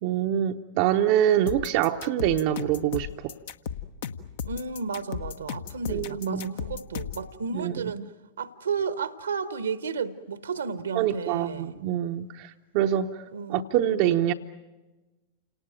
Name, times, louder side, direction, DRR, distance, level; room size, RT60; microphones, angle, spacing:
voice 1, 0.0-3.4 5.9-6.5 7.5-8.1 10.9-13.2 13.5-14.3, right 11 dB, 45° right, 0.8 m, -25 dB
sound 1, 1.5-7.3, left 7 dB, 55° left, 1.1 m, -35 dB
voice 2, 4.4-8.0 8.4-11.8 13.3-13.6, right 5 dB, 70° right, 1.1 m, -32 dB
29.0 x 19.0 x 9.2 m
figure-of-eight pair, 90°, 0 cm